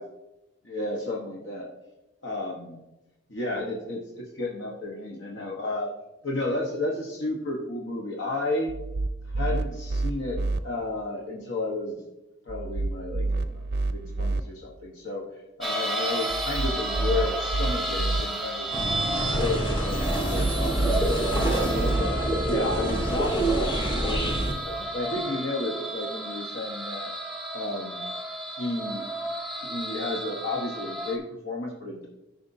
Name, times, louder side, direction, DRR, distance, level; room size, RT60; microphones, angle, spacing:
voice 1, 0.6-1.7 2.2-2.8 3.3-5.9 6.2-8.7 9.2-12.0 12.5-15.3 15.6-18.7 19.1-27.1 27.5-28.0 28.6-29.1 29.6-32.1, left 2 dB, 80° left, -2 dB, 1.1 m, -32 dB
sound 1, 8.7-10.6 12.5-14.4 16.3-18.2 20.1-22.0, right 2 dB, 60° right, 0.4 m, -29 dB
sound 2, 15.6-31.2, right 1 dB, ahead, 0.8 m, -33 dB
sound 3, 18.7-24.5, right 1 dB, 25° left, 1.3 m, -26 dB
13.5 x 5.2 x 2.6 m, 0.96 s
head